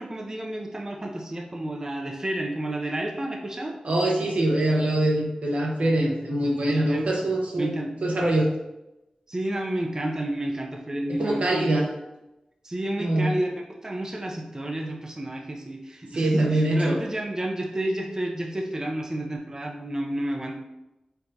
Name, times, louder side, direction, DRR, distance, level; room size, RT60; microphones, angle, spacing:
voice 1, 0.0-3.8 6.7-7.1 7.6-7.9 9.3-11.9 12.6-13.5 13.8-20.5, right 1 dB, 25° right, 0 dB, 0.5 m, -30 dB
voice 2, 3.8-7.7 8.0-8.5 11.2-11.9 13.0-13.3 16.1-17.0, right 1 dB, 80° right, -1 dB, 0.9 m, -23 dB
4.4 x 3.7 x 2.7 m, 0.95 s
wide cardioid pair, 80°, 2 cm